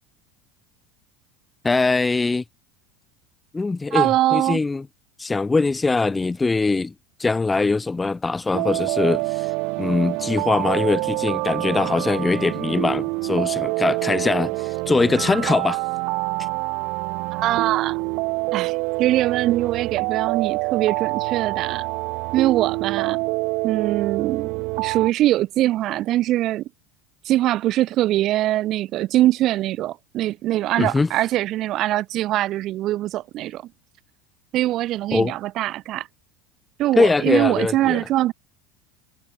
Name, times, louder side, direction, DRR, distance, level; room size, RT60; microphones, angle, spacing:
voice 1, 1.6-2.4 3.5-4.8 5.2-6.9 7.2-9.5 9.8-15.8 30.8-31.1 35.1-35.3 37.0-38.0, left 3 dB, 10° left, 0.5 m, -22 dB
voice 2, 3.9-4.6 17.3-18.0 18.5-21.9 22.3-23.2 23.6-26.7 27.2-33.6 34.5-36.1 36.8-38.3, right 14 dB, 45° right, 0.9 m, -22 dB
sound 1, 8.5-25.1, right 28 dB, 60° right, 3.5 m, -26 dB
supercardioid pair, 140°, 0 cm